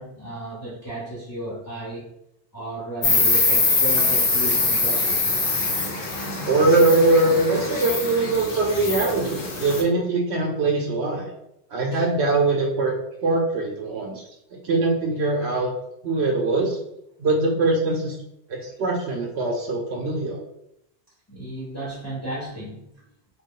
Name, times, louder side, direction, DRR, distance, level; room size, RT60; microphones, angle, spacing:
voice 1, 0.0-2.1 2.5-5.3 11.9-12.0 21.3-22.9, right 1 dB, 20° left, -8 dB, 0.8 m, -34 dB
Insect, 3.0-9.8, left 3 dB, 60° left, 0.9 m, -23 dB
voice 2, 6.4-11.3 11.7-13.0 13.2-14.2 14.5-15.7 16.0-16.8 17.2-18.2 18.5-20.4, right 2 dB, 75° right, 0 dB, 0.9 m, -22 dB
3.0 x 2.3 x 3.7 m, 0.80 s
omnidirectional pair, 1.1 m